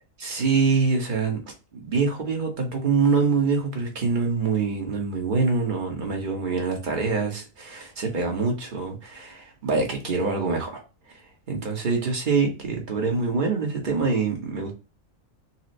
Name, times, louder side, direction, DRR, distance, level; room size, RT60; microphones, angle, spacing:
voice 1, 0.2-1.4 1.7-10.8 11.1-11.2 11.5-14.7, right 4 dB, 40° right, 1.0 m, -25 dB
4.2 x 2.0 x 2.5 m
omnidirectional pair, 1.4 m